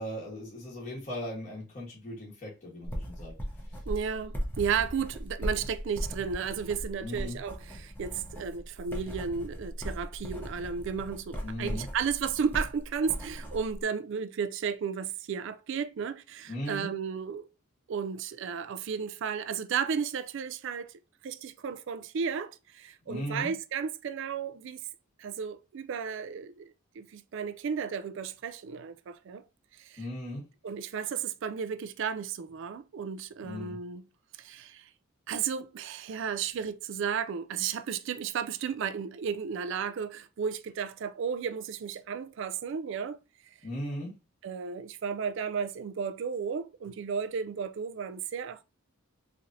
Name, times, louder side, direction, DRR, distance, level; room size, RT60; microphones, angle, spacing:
voice 1, 0.0-3.3 7.0-7.4 11.4-11.9 16.5-16.9 23.0-23.5 30.0-30.4 33.4-33.8 43.6-44.1, equal, 35° left, 1.4 m, -37 dB
sound 1, 2.8-13.8, equal, 10° left, 0.8 m, -38 dB
voice 2, 3.9-17.5 17.9-20.9 21.2-24.8 25.2-29.4 29.8-30.0 30.6-34.0 34.4-34.9 35.3-43.2 44.4-48.6, right 6 dB, 60° right, 0.3 m, -34 dB
3.8 x 3.2 x 2.6 m
head